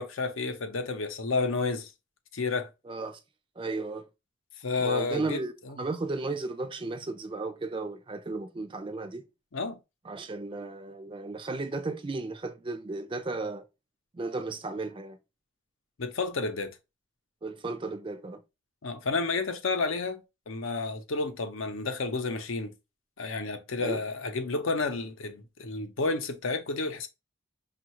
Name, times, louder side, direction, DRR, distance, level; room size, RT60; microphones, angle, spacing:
voice 1, 0.0-1.9 2.3-2.7 4.6-5.8 9.5-9.8 16.0-16.8 18.8-22.7 23.2-27.1, left 3 dB, 80° left, 0.7 m, -31 dB
voice 2, 2.9-3.2 3.6-4.0 4.8-9.2 10.0-13.6 14.1-15.2 17.4-18.4 23.8-24.0, right 3 dB, 25° right, 0.4 m, -34 dB
5.4 x 2.4 x 2.9 m
head